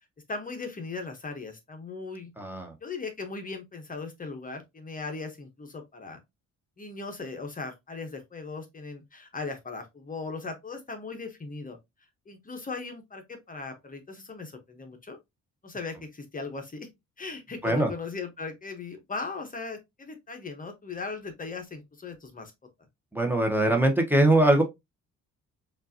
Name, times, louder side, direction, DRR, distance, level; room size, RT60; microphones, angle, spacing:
voice 1, 0.3-2.3 2.8-6.2 6.8-11.8 12.3-15.2 15.6-16.9 17.2-22.5, left 4 dB, 25° left, 0.9 m, -38 dB
voice 2, 2.4-2.7 17.6-17.9 23.1-24.6, right 1 dB, 5° right, 0.9 m, -22 dB
5.2 x 2.6 x 2.7 m
cardioid pair, 90°, 30 cm